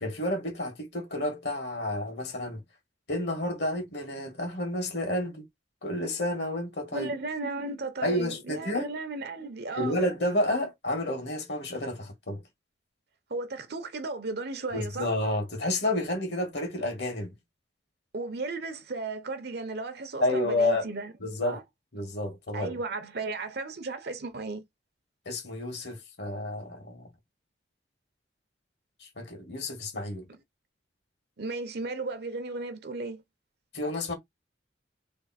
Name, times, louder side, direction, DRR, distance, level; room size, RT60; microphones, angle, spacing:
voice 1, 0.0-2.6 3.1-5.4 5.8-7.1 8.0-8.9 9.7-12.4 14.7-17.3 20.2-20.9 21.2-21.6 21.9-22.8 25.3-27.1 29.0-30.3 33.7-34.1, left 1 dB, 65° left, 1.8 m, -30 dB
voice 2, 6.9-10.0 13.3-15.1 18.1-21.1 21.4-21.6 22.5-24.6 31.4-33.2, right 3 dB, 60° right, 0.7 m, -35 dB
3.4 x 2.6 x 4.2 m
head